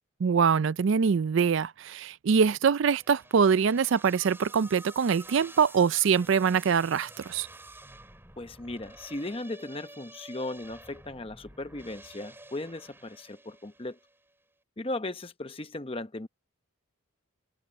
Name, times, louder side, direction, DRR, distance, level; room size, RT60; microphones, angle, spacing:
voice 1, 0.2-7.5, right 6 dB, 65° right, 0.4 m, -24 dB
sound 1, 2.9-14.2, right 2 dB, 10° right, 5.8 m, -50 dB
voice 2, 8.4-14.0 14.8-16.3, left 2 dB, 25° left, 0.8 m, -37 dB
head